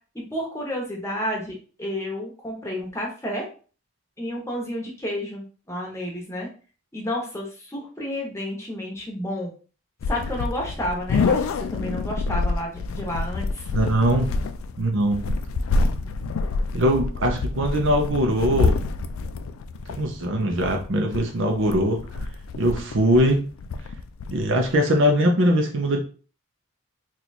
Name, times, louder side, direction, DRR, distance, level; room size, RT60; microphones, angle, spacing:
voice 1, 0.1-3.5 4.2-6.5 6.9-9.5 10.1-11.4 11.7-13.7, left 1 dB, 15° left, -2 dB, 0.9 m, -31 dB
sound 1, 10.0-24.8, left 3 dB, 75° left, 0.3 m, -27 dB
voice 2, 13.7-14.3 14.8-15.4 16.7-18.8 19.9-22.0 22.6-23.4 24.3-26.0, equal, 60° right, 2 dB, 0.6 m, -21 dB
2.9 x 2.4 x 4.0 m, 0.38 s
head